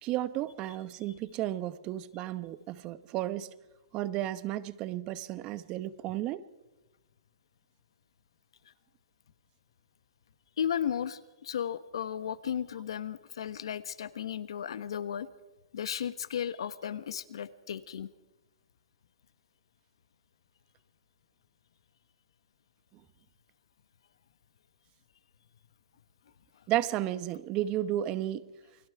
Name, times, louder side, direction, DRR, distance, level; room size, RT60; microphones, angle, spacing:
voice 1, 0.0-3.5 3.9-6.4 26.7-28.5, right 13 dB, 30° right, 15 dB, 0.9 m, -33 dB
voice 2, 10.6-15.3 15.7-18.1, left 9 dB, 80° left, 14 dB, 1.2 m, -34 dB
28.5 x 21.5 x 4.8 m, 1.0 s
hypercardioid pair, 150°, 3 cm